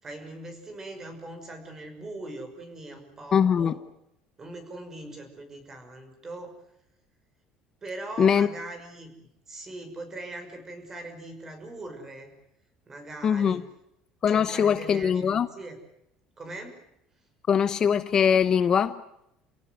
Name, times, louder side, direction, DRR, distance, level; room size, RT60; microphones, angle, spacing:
voice 1, 0.0-3.8 4.4-6.6 7.8-9.1 9.5-12.3 12.9-13.6 14.3-15.8 16.4-16.8, right 2 dB, 20° right, 7 dB, 6.0 m, -41 dB
voice 2, 3.3-3.8 8.2-8.5 13.2-13.6 14.2-15.5 17.5-19.0, left 7 dB, 35° left, 12 dB, 0.9 m, -22 dB
29.5 x 17.0 x 9.5 m, 0.83 s
cardioid pair, 150°, 2 cm